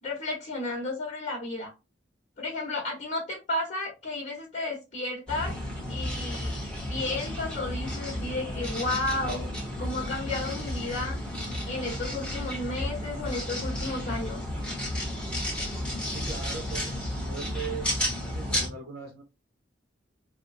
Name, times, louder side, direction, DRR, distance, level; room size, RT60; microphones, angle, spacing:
voice 1, 0.0-1.7 2.4-5.6 5.9-6.6 6.9-9.5 9.8-11.2 11.7-14.4, left 2 dB, 45° left, -4 dB, 1.4 m, -33 dB
sound 1, 5.3-18.7, left 1 dB, 5° left, 1.2 m, -32 dB
voice 2, 16.1-17.9 18.2-19.2, right 5 dB, 60° right, 2 dB, 0.7 m, -39 dB
4.3 x 2.2 x 2.6 m, 0.27 s
head